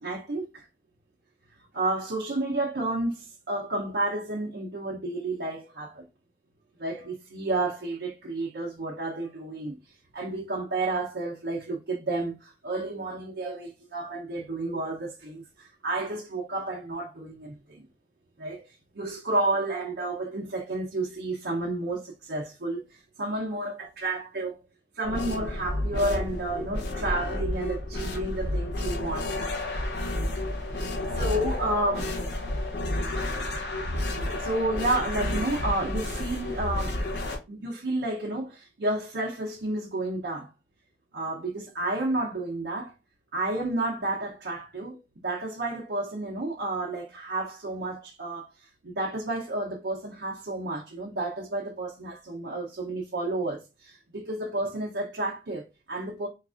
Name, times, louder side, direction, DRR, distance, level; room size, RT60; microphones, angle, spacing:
voice 1, 0.0-0.6 1.7-6.0 6.8-17.8 18.4-24.6 24.9-29.3 30.7-32.1 33.9-37.0 37.5-40.5 41.1-42.9 43.3-56.3, right 2 dB, 75° right, 0.7 m, -31 dB
sound 1, 25.0-37.4, left 1 dB, 75° left, 0.8 m, -31 dB
4.6 x 2.4 x 2.5 m
head